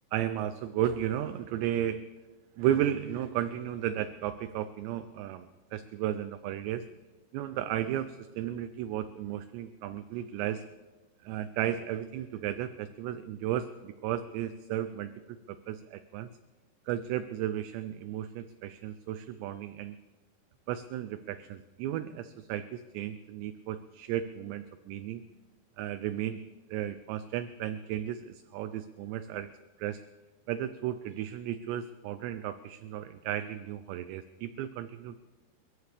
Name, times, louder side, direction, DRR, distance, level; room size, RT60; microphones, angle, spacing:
voice 1, 0.1-2.0 2.6-6.9 7.3-10.6 11.2-15.1 15.5-16.3 16.9-20.0 20.7-25.2 25.8-26.4 26.7-29.5 29.8-30.0 30.5-35.2, right 11 dB, 85° right, 11 dB, 2.5 m, -34 dB
28.5 x 14.5 x 3.4 m, 1.2 s
omnidirectional pair, 5.6 m